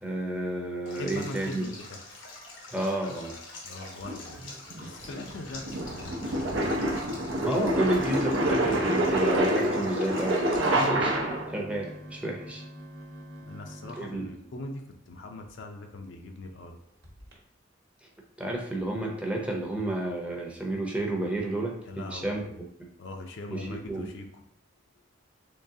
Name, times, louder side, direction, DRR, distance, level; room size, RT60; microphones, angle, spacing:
voice 1, 0.0-1.7 2.7-3.3 7.2-11.1 11.5-12.6 14.0-14.3 18.0-18.1 18.4-22.4 23.5-24.1, right 1 dB, 5° right, -1 dB, 0.6 m, -31 dB
Stream, 0.9-10.9, left 3 dB, 85° left, 0.9 m, -46 dB
voice 2, 1.0-1.9 3.6-4.4 4.8-6.8 10.7-11.0 13.4-16.8 21.8-22.6 23.0-24.4, left 2 dB, 70° left, 4 dB, 0.5 m, -41 dB
sound 1, 4.0-11.6, right 1 dB, 90° right, 0.6 m, -27 dB
sound 2, 10.5-15.5 16.0-16.1 16.4-16.6 17.0-17.4, equal, 60° right, 1.0 m, -46 dB
3.8 x 3.2 x 2.7 m, 0.73 s
head